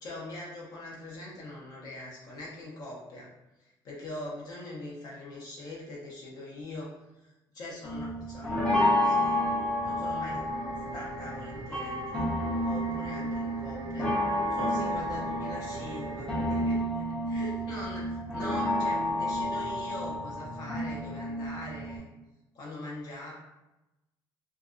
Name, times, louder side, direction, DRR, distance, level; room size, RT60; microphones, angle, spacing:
voice 1, 0.0-3.3 3.6-9.4 9.8-10.5 10.9-12.4 12.6-14.2 14.5-22.1 22.5-23.3, left 1 dB, 50° left, -5 dB, 0.7 m, -42 dB
sound 1, 7.8-22.0, left 1 dB, 10° left, 0.5 m, -30 dB
sound 2, 10.3-16.6, right 2 dB, 60° right, 0.4 m, -43 dB
2.6 x 2.3 x 2.4 m, 0.98 s
cardioid pair, 180°, 9 cm